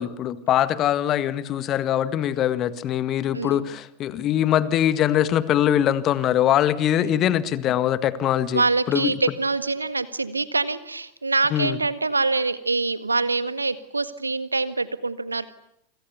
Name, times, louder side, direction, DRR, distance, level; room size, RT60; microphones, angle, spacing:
voice 1, 0.0-8.6 8.9-9.1 11.5-11.8, left 11 dB, 30° left, 1.8 m, -22 dB
voice 2, 3.3-3.7 6.9-7.2 8.5-15.4, right 3 dB, 80° right, 1.6 m, -25 dB
28.5 x 26.5 x 6.9 m
figure-of-eight pair, 90°, 0 cm